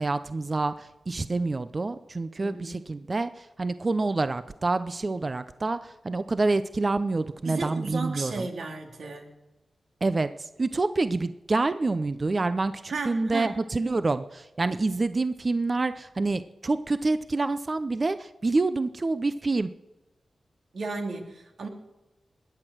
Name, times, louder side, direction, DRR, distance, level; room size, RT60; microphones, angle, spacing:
voice 1, 0.0-8.5 10.0-19.7, right 3 dB, 45° right, 12 dB, 0.6 m, -27 dB
voice 2, 2.4-2.8 7.4-9.3 12.9-13.5 14.7-14.8 20.7-21.7, right 3 dB, 80° right, 2 dB, 2.5 m, -34 dB
20.5 x 8.0 x 6.2 m, 1.0 s
cardioid pair, 45°, 0 cm